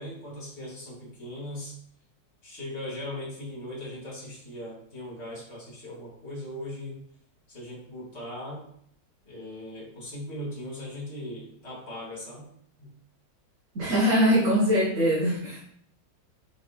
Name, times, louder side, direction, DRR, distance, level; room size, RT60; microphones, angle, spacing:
voice 1, 0.0-1.8 2.4-7.0 7.5-8.6 9.2-12.5 12.8-12.9 14.0-14.6, left 1 dB, 35° left, -5 dB, 3.1 m, -39 dB
voice 2, 13.8-15.6, equal, 45° right, -5 dB, 1.7 m, -22 dB
5.7 x 5.1 x 4.6 m, 0.66 s
omnidirectional pair, 2.0 m